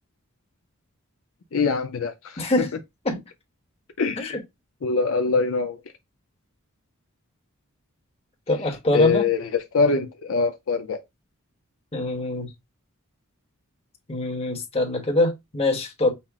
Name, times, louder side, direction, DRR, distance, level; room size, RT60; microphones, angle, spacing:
voice 1, 1.5-2.4 4.0-4.4 4.8-5.8 8.9-11.0, left 4 dB, 70° left, 0.5 m, -23 dB
voice 2, 2.4-2.7 3.0-3.2 4.2-4.3 8.5-9.3 11.9-12.5 14.1-16.1, left 2 dB, 30° left, 1.1 m, -24 dB
5.6 x 2.0 x 3.5 m
head